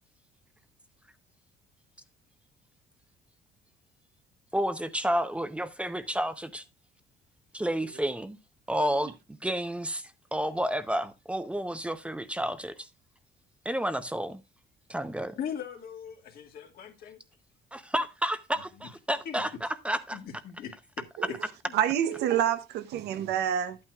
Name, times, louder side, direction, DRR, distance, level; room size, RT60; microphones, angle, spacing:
voice 1, 4.5-6.6 7.5-8.4 8.7-9.2 9.4-10.0 10.3-12.9 13.6-14.4 14.9-15.4 17.7-20.2, equal, 5° right, 0.7 m, -30 dB
voice 2, 15.4-17.2 19.2-19.5 20.1-21.4 21.6-21.8, left 8 dB, 65° left, 1.8 m, -40 dB
voice 3, 21.7-23.8, right 10 dB, 80° right, 0.9 m, -27 dB
11.0 x 8.7 x 2.3 m
cardioid pair, 110°, 17 cm